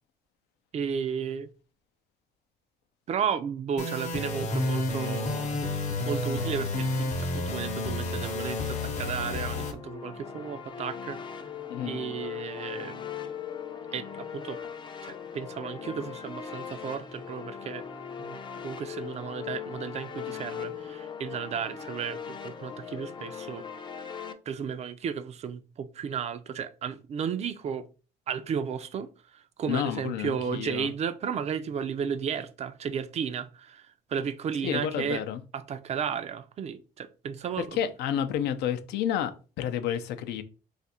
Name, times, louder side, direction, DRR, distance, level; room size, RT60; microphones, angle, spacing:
voice 1, 0.7-1.5 3.1-5.5 6.1-11.2 11.8-13.0 13.9-14.6 15.0-17.9 18.2-23.7 24.5-27.9 28.3-35.2 35.5-37.7, right 7 dB, 40° right, 0.4 m, -34 dB
sound 1, 3.8-9.7, left 2 dB, 45° left, 0.8 m, -30 dB
sound 2, 9.6-24.3, left 7 dB, 30° left, 0.4 m, -39 dB
voice 2, 29.7-30.9 34.6-35.4 37.6-40.4, left 9 dB, 80° left, 0.5 m, -30 dB
2.5 x 2.4 x 4.1 m
cardioid pair, 110°, 17 cm